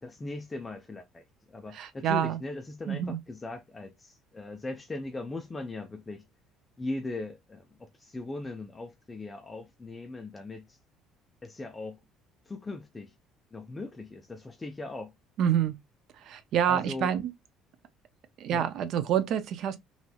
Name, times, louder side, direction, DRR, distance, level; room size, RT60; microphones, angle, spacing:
voice 1, 0.0-6.3 6.8-10.8 11.4-12.0 12.5-13.1 13.5-15.1 16.7-17.1 18.5-18.7, left 2 dB, 15° left, 0.3 m, -39 dB
voice 2, 1.7-2.4 2.9-3.2 15.4-15.8 16.1-17.3 18.4-19.8, right 9 dB, 55° right, 0.4 m, -27 dB
3.0 x 2.9 x 2.2 m
cardioid pair, 160°, 0 cm